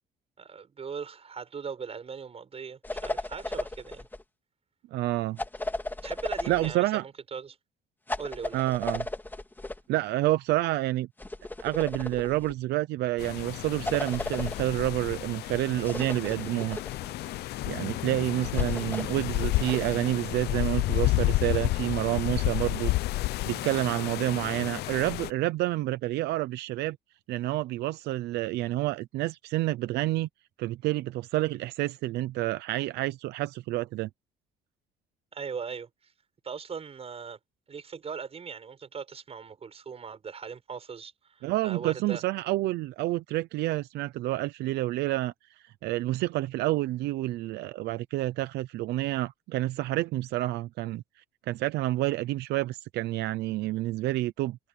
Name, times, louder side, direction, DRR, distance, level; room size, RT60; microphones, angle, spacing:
voice 1, 0.4-4.1 6.0-7.6 8.2-8.6 35.3-35.9 36.4-37.4 37.7-42.2, right 6 dB, 35° right, 7.6 m, -39 dB
sound 1, 2.8-4.2 5.4-6.8 8.1-9.8 11.2-12.5 13.8-14.7 15.8-17.3 18.5-19.9, left 2 dB, 10° left, 2.9 m, -35 dB
voice 2, 4.9-5.4 6.5-7.0 8.5-9.1 9.9-11.1 11.6-16.8 17.7-22.9 23.5-27.0 27.3-30.3 30.6-34.1 41.4-45.3 45.6-51.0 51.5-54.6, right 16 dB, 80° right, 0.8 m, -29 dB
sound 2, 13.2-25.3, left 18 dB, 75° left, 0.6 m, -31 dB
cardioid pair, 110°, 17 cm